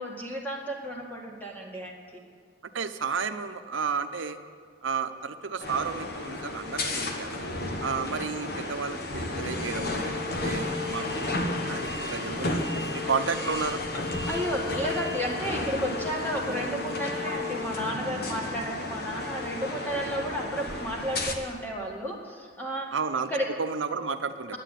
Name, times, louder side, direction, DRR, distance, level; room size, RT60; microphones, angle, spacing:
voice 1, 0.0-2.2 14.3-22.9 23.3-23.5, equal, 10° left, -1 dB, 1.9 m, -32 dB
voice 2, 2.7-4.4 4.8-7.4 7.8-12.6 13.1-13.8 22.9-24.6, right 5 dB, 80° right, 9 dB, 0.8 m, -32 dB
sound 1, 5.6-21.3, left 2 dB, 55° left, 1.2 m, -32 dB
11.5 x 8.2 x 9.1 m, 2.1 s
head